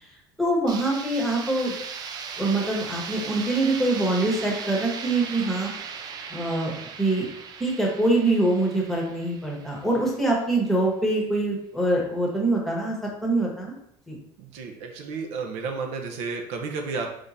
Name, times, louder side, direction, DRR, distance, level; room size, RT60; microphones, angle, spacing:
voice 1, 0.4-1.8 2.4-5.7 6.3-6.7 7.0-7.3 7.6-13.7 14.1-14.2, right 2 dB, ahead, -2 dB, 1.0 m, -24 dB
sound 1, 0.7-10.4, right 6 dB, 35° right, 0.4 m, -38 dB
voice 2, 14.4-17.1, right 4 dB, 70° right, 4 dB, 0.7 m, -32 dB
3.7 x 3.3 x 4.1 m, 0.74 s
cardioid pair, 155°, 11 cm